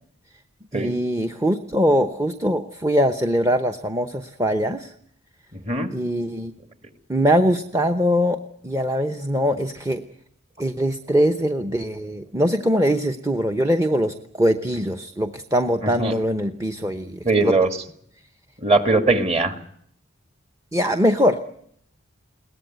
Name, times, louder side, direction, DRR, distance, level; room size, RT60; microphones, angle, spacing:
voice 1, 0.7-4.9 5.9-6.5 7.1-8.4 8.6-10.0 10.6-17.5 20.7-21.5, equal, 15° right, 7 dB, 0.9 m, -22 dB
voice 2, 5.5-5.9 15.8-16.1 17.2-17.7 18.6-19.6, right 3 dB, 30° right, 8 dB, 2.1 m, -20 dB
22.0 x 18.0 x 9.2 m, 0.68 s
head